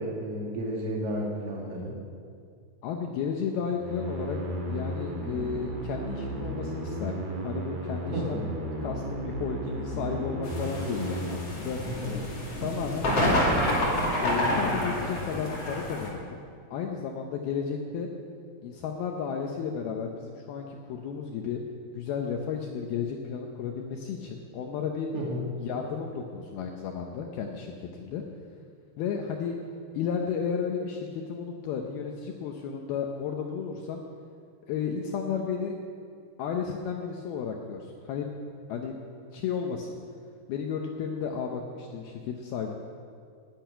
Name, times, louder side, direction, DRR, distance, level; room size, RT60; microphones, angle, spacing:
voice 1, 0.0-2.0 8.1-8.4 11.9-12.2 25.1-25.4, equal, 65° right, -2 dB, 1.5 m, -32 dB
voice 2, 2.8-4.4 4.7-8.4 8.8-11.8 12.6-13.5 14.2-16.4 16.7-18.1 18.6-21.6 21.9-25.1 25.6-28.2 29.0-29.5 30.0-34.0 34.7-35.8 36.4-38.3 38.7-39.0 39.3-39.9 40.5-42.8, left 6 dB, 80° left, 2 dB, 2.3 m, -33 dB
sound 1, 3.7-11.4, right 1 dB, 50° right, 2.4 m, -34 dB
sound 2, 10.4-16.1, left 1 dB, 40° left, 2.9 m, -28 dB
11.0 x 10.5 x 9.2 m, 2.3 s
omnidirectional pair, 5.3 m